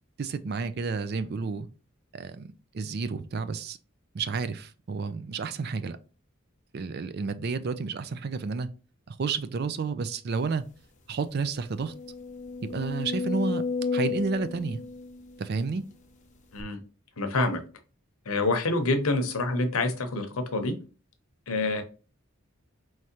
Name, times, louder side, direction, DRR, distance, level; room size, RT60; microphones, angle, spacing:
voice 1, 0.2-1.7 2.1-2.5 2.7-3.8 4.1-6.0 6.7-8.7 9.1-10.6 11.1-11.9 12.7-13.6 13.9-14.8 15.4-15.8, right 4 dB, 50° right, 0.4 m, -31 dB
sound 1, 10.6-10.7 11.0-11.1 11.7-15.9 16.6-16.7, left 4 dB, 35° left, 0.7 m, -33 dB
voice 2, 17.2-17.6 18.3-20.8 21.5-21.8, left 2 dB, 90° left, 0.8 m, -27 dB
4.8 x 3.2 x 2.8 m
head